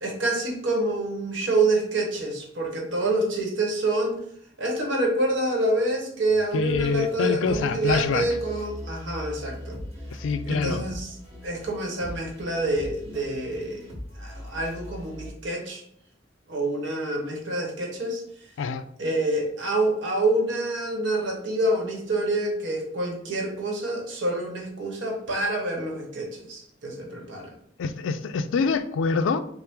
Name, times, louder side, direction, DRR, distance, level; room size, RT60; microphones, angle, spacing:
voice 1, 0.0-4.2 4.6-9.8 10.4-11.1 11.4-13.9 14.2-15.8 16.5-18.2 19.0-27.5, right 2 dB, 70° right, 1 dB, 1.1 m, -27 dB
sound 1, 6.3-15.3, left 1 dB, 35° right, 1.2 m, -40 dB
voice 2, 6.5-8.3 10.1-10.8 18.6-18.8 27.8-29.4, left 5 dB, 80° left, 11 dB, 0.4 m, -25 dB
5.6 x 2.0 x 3.6 m, 0.68 s
head